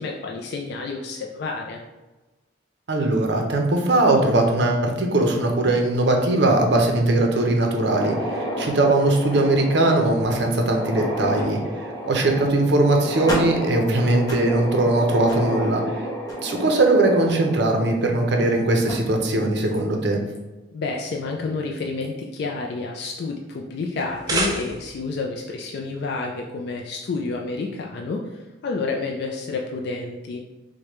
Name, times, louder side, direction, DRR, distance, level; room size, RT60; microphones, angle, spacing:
voice 1, 0.0-1.8 20.7-30.4, left 3 dB, 60° left, 0 dB, 0.3 m, -29 dB
voice 2, 2.9-16.1 16.4-20.3, right 2 dB, 65° right, 2 dB, 0.6 m, -20 dB
sound 1, 7.7-18.5 18.8-18.9 19.7-19.8 20.3-20.4 21.8-22.0, equal, 20° left, 0.6 m, -31 dB
sound 2, 24.0-25.1, right 2 dB, 20° right, 0.4 m, -27 dB
4.8 x 2.1 x 3.0 m, 1.1 s
head